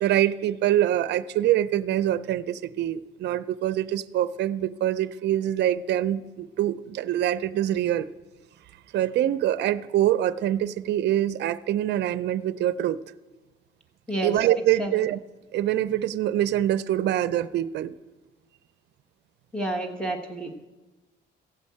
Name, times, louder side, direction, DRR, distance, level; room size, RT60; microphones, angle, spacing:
voice 1, 0.0-8.1 8.9-13.0 14.2-15.2 15.5-17.9, right 12 dB, 65° right, 15 dB, 0.5 m, -24 dB
voice 2, 19.5-20.7, right 1 dB, 5° left, 4 dB, 1.4 m, -30 dB
15.0 x 5.4 x 8.5 m, 1.2 s
cardioid pair, 105°, 19 cm